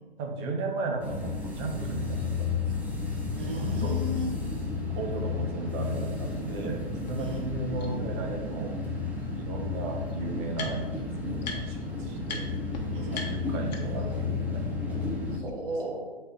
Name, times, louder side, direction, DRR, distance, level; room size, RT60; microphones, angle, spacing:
voice 1, 0.2-2.5 2.7-2.9 3.5-4.0 4.9-8.7 9.4-12.5 12.9-14.6 14.9-15.1, right 3 dB, 25° right, 2 dB, 1.0 m, -35 dB
sound 1, 1.0-15.4, left 4 dB, 5° right, 0.6 m, -32 dB
voice 2, 3.4-4.3 7.2-7.4 12.9-13.2 15.3-16.0, right 1 dB, 60° right, -2 dB, 2.0 m, -34 dB
sound 2, 7.1-7.2 7.8-7.9 9.2-9.3 9.5-11.0 11.4-11.9 12.2-12.4 12.7-12.8 13.1-14.1, left 4 dB, 40° left, 1.2 m, -40 dB
6.7 x 4.4 x 3.7 m, 1.2 s
figure-of-eight pair, 120°, 31 cm